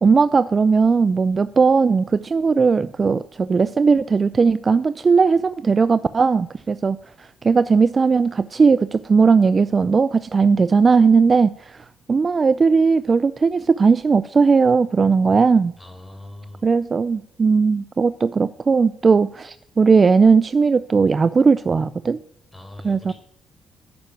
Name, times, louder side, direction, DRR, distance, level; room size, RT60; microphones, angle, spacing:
voice 1, 0.0-15.7 16.6-22.2 22.8-23.1, right 5 dB, 35° right, 15 dB, 0.4 m, -17 dB
voice 2, 15.8-16.7 22.5-23.1, left 1 dB, 10° left, 3 dB, 4.5 m, -41 dB
10.5 x 9.0 x 9.1 m, 0.74 s
cardioid pair, 90°, 0 cm